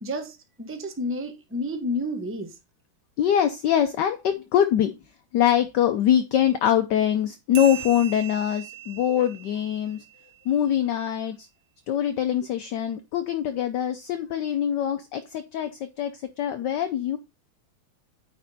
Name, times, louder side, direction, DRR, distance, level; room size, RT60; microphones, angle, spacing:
voice 1, 0.0-2.6, left 1 dB, 10° right, 0.6 m, -30 dB
voice 2, 3.2-4.9 5.3-10.0 10.5-11.5 11.9-15.7 16.0-16.1 16.4-17.2, left 10 dB, 70° left, 1.1 m, -23 dB
sound 1, 7.5-10.6, right 12 dB, 75° right, 1.8 m, -39 dB
9.4 x 4.3 x 4.1 m
omnidirectional pair, 2.4 m